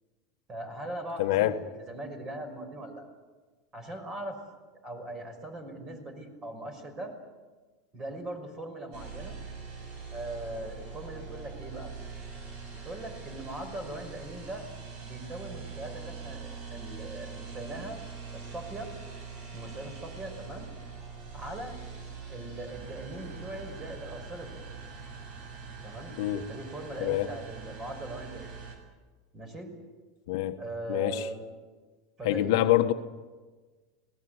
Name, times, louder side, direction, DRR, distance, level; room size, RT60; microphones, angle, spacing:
voice 1, 0.5-3.1 3.7-4.4 4.8-7.1 7.9-9.3 10.1-11.9 12.7-14.7 15.0-18.0 18.3-18.9 19.5-20.7 21.3-21.7 22.3-24.7 25.8-26.1 26.5-28.6 29.3-29.7 30.6-31.5 32.2-32.8, right 1 dB, 25° right, 6 dB, 5.9 m, -40 dB
voice 2, 1.2-1.6 26.2-26.5 27.0-27.3 30.3-30.6 30.9-31.3 32.2-32.9, left 14 dB, 70° left, 7 dB, 1.4 m, -25 dB
sound 1, 8.9-28.8, right 5 dB, 45° right, 7.3 m, -43 dB
27.0 x 19.0 x 8.1 m, 1.3 s
supercardioid pair, 140°, 2 cm